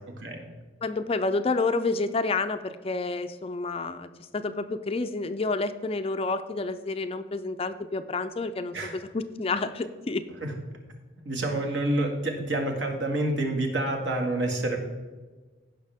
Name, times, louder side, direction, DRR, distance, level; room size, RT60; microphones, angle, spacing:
voice 1, 0.8-10.2, left 3 dB, 30° left, 10 dB, 0.4 m, -29 dB
voice 2, 11.2-14.8, right 1 dB, 65° right, 1 dB, 2.0 m, -28 dB
16.5 x 5.8 x 3.5 m, 1.3 s
head